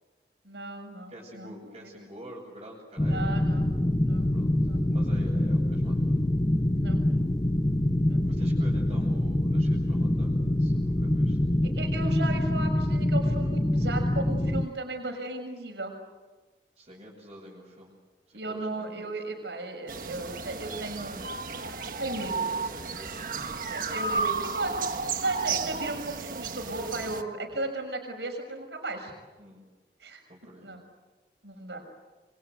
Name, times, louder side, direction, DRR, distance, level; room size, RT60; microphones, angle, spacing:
voice 1, 0.4-1.5 1.8-1.9 3.0-3.7 4.1-4.3 4.6-4.8 6.8-7.0 8.0-8.2 11.6-15.9 18.3-21.3 22.0-22.5 23.7-29.1 30.0-30.2 30.6-30.8 31.4-31.8, right 2 dB, 85° right, 4 dB, 6.4 m, -35 dB
voice 2, 1.1-3.4 4.3-6.2 8.2-10.3 10.6-11.4 16.8-17.9 18.3-19.1 22.5-23.6 29.4-29.6 30.3-30.8, equal, 30° right, -5 dB, 7.5 m, -48 dB
sound 1, 3.0-14.7, left 1 dB, 20° left, 0.9 m, -25 dB
sound 2, 19.9-27.2, right 4 dB, 50° right, 1.5 m, -33 dB
28.5 x 25.0 x 8.1 m, 1.2 s
head